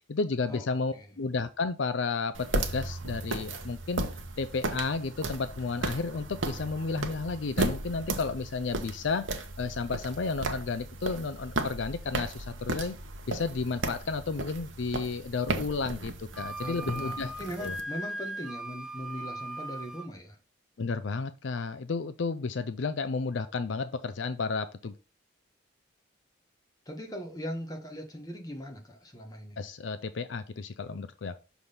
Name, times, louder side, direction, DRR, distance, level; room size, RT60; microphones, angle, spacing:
voice 1, 0.1-4.0 4.4-12.9 13.3-17.3 17.6-17.8 20.8-24.9 29.6-31.4, left 4 dB, 70° left, 0.5 m, -32 dB
sound 1, 2.3-17.8, right 2 dB, 80° right, 0.9 m, -35 dB
Wind instrument woodwind instrument, 16.3-20.1, right 1 dB, 5° right, 0.5 m, -38 dB
voice 2, 16.6-20.4 26.9-29.6, equal, 20° left, 1.2 m, -40 dB
6.2 x 3.5 x 5.5 m
head